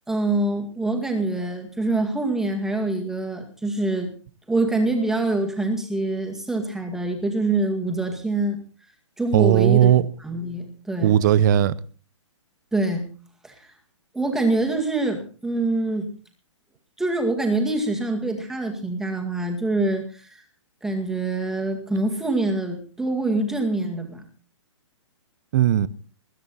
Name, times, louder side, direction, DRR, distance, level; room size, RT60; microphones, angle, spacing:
voice 1, 0.1-4.1 4.5-8.6 9.2-9.9 10.2-11.1 12.7-13.1 13.4-13.5 14.1-16.1 17.0-20.3 20.8-24.2, right 2 dB, 5° right, 2.1 m, -25 dB
voice 2, 9.3-10.1 11.0-11.7 25.5-25.9, right 11 dB, 35° right, 0.7 m, -17 dB
21.0 x 10.5 x 4.2 m
hypercardioid pair, 160°, 16 cm